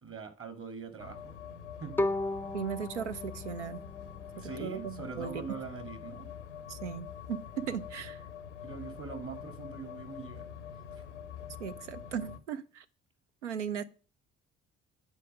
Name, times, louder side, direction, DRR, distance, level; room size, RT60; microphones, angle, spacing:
voice 1, 0.0-1.3 1.8-2.0 4.4-6.3 8.6-10.5 10.9-11.0, right 5 dB, 40° right, 2.3 m, -43 dB
sound 1, 1.0-12.4, left 8 dB, 90° left, 0.6 m, -45 dB
Bowed string instrument, 2.0-5.0, left 2 dB, 5° left, 0.4 m, -36 dB
voice 2, 2.5-3.8 4.4-5.4 6.7-8.2 11.6-12.8 13.4-13.8, right 7 dB, 80° right, 0.6 m, -37 dB
8.4 x 4.6 x 6.4 m
figure-of-eight pair, 45°, 35 cm